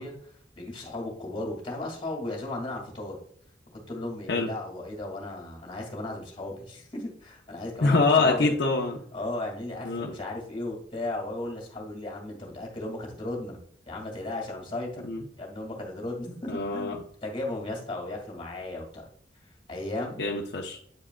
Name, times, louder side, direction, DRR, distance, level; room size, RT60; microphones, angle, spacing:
voice 1, 0.0-3.2 3.9-8.5 9.1-13.6 13.9-15.0 15.4-19.1 19.7-20.2, left 2 dB, 30° left, -1 dB, 2.2 m, -35 dB
voice 2, 7.8-9.0 9.8-10.1 15.0-15.2 16.5-17.0 20.2-20.8, left 3 dB, 70° left, 0 dB, 0.8 m, -24 dB
8.7 x 4.8 x 2.2 m, 0.62 s
head